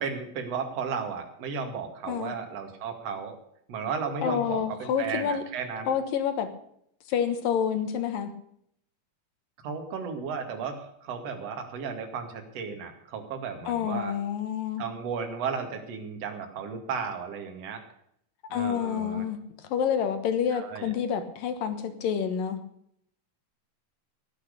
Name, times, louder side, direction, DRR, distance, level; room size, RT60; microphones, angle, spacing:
voice 1, 0.0-3.4 3.7-5.9 9.6-14.1 14.8-17.8 18.5-19.2 20.5-20.9, right 6 dB, 45° right, 4 dB, 2.9 m, -34 dB
voice 2, 4.2-5.4 5.9-6.5 7.1-8.3 13.7-14.9 18.5-19.4 19.7-22.6, left 8 dB, 70° left, 9 dB, 2.9 m, -28 dB
18.0 x 8.7 x 6.8 m, 0.70 s
omnidirectional pair, 4.4 m